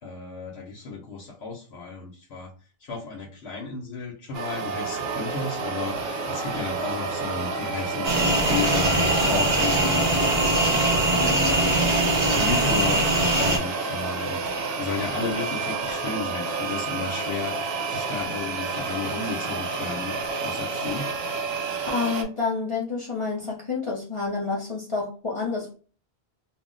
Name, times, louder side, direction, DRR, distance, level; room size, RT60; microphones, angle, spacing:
voice 1, 0.0-2.5 2.8-11.8 12.4-17.6 17.9-20.2 20.4-21.1, left 4 dB, 80° left, -2 dB, 1.0 m, -33 dB
sound 1, 4.3-22.2, right 4 dB, 70° right, 0.8 m, -30 dB
sound 2, 8.0-13.6, right 1 dB, 40° right, 0.6 m, -22 dB
voice 2, 21.9-25.7, left 4 dB, 35° left, -3 dB, 0.7 m, -28 dB
2.4 x 2.0 x 3.7 m, 0.38 s
omnidirectional pair, 1.1 m